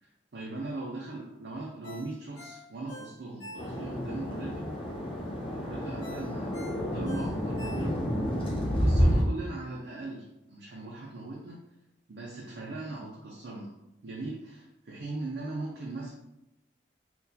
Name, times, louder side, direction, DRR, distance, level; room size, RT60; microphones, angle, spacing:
voice 1, 0.0-4.7 5.4-8.0 8.7-11.7 12.1-13.7 14.0-14.6 14.9-16.1, right 2 dB, 60° right, -2 dB, 0.5 m, -39 dB
Ringtone, 1.8-4.1 4.5-4.6 6.0-8.2 8.6-8.7, left 1 dB, 60° left, 1.0 m, -46 dB
sound 1, 3.6-9.2, equal, 30° left, 0.5 m, -29 dB
3.9 x 2.3 x 2.7 m, 0.87 s
head